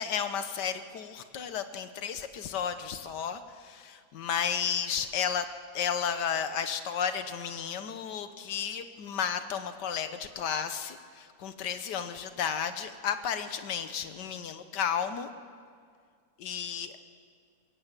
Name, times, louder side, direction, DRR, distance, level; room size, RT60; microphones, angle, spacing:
voice 1, 0.0-5.5 5.7-15.3 16.4-16.9, left 7 dB, 85° left, 10 dB, 1.6 m, -33 dB
21.5 x 16.0 x 9.0 m, 2.1 s
omnidirectional pair, 1.8 m